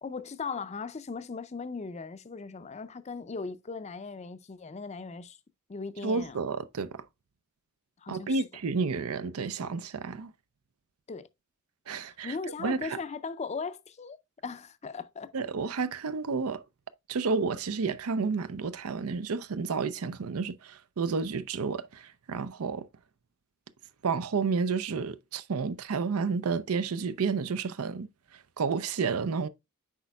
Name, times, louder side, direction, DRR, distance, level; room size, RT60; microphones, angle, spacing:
voice 1, 0.0-5.4 5.7-6.4 8.0-8.5 11.1-11.3 12.1-14.2 14.4-15.3, left 4 dB, 30° left, 0.4 m, -38 dB
voice 2, 6.0-7.0 8.1-10.3 11.9-13.0 15.3-16.6 17.1-22.9 24.0-28.1 28.3-29.5, right 4 dB, 90° right, 0.5 m, -31 dB
8.2 x 5.2 x 2.3 m
head